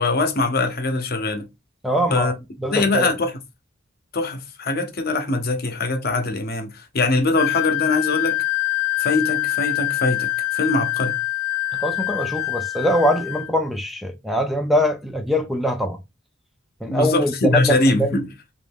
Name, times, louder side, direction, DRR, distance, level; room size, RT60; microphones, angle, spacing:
voice 1, 0.0-1.5 2.1-2.3 2.7-3.3 4.1-8.4 9.0-11.1 16.8-18.3, left 2 dB, 50° left, 0.8 m, -22 dB
voice 2, 1.8-2.3 2.6-3.1 11.7-16.0 16.8-18.1, equal, ahead, 0.4 m, -23 dB
Wind instrument woodwind instrument, 7.3-13.5, left 17 dB, 90° left, 0.3 m, -25 dB
3.2 x 2.6 x 3.5 m
head